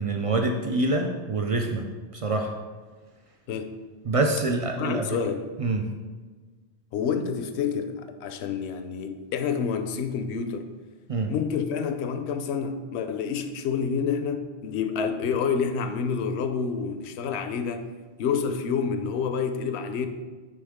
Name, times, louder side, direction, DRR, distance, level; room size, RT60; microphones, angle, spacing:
voice 1, 0.0-2.5 4.1-5.1 5.6-5.9 11.1-11.3, right 2 dB, 65° right, 3 dB, 0.3 m, -26 dB
voice 2, 4.8-5.5 6.9-10.7 11.3-17.9 18.2-20.1, left 6 dB, 75° left, 8 dB, 0.8 m, -28 dB
9.4 x 3.5 x 3.5 m, 1.4 s
omnidirectional pair, 1.2 m